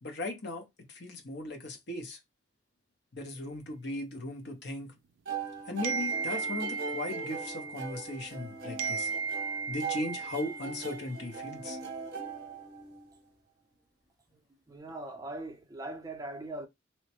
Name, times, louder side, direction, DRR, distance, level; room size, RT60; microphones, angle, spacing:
voice 1, 0.0-2.2 3.1-4.9 5.7-9.1 9.7-11.8, left 2 dB, 60° left, 0.9 m, -38 dB
sound 1, 5.3-13.2, right 5 dB, 55° right, 0.8 m, -40 dB
sound 2, 5.8-8.4 8.8-11.3, right 5 dB, 70° right, 0.4 m, -36 dB
voice 2, 14.7-16.7, right 2 dB, 20° right, 0.5 m, -40 dB
3.0 x 2.1 x 2.9 m
head